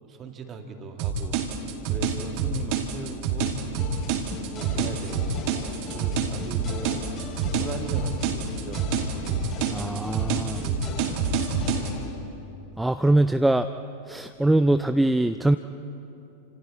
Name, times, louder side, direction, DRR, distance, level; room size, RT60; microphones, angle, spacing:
voice 1, 0.0-1.4 1.9-3.6 4.5-5.4 5.9-8.8, right 4 dB, 25° right, 4 dB, 2.3 m, -39 dB
sound 1, 1.0-11.9, right 5 dB, 45° right, 2.1 m, -27 dB
sound 2, 3.8-12.1, left 4 dB, 35° left, 4.9 m, -38 dB
voice 2, 9.7-10.6 12.8-13.7 14.1-15.6, right 1 dB, 5° right, 9 dB, 0.5 m, -22 dB
29.5 x 26.5 x 4.3 m, 2.9 s
figure-of-eight pair, 90°, 0 cm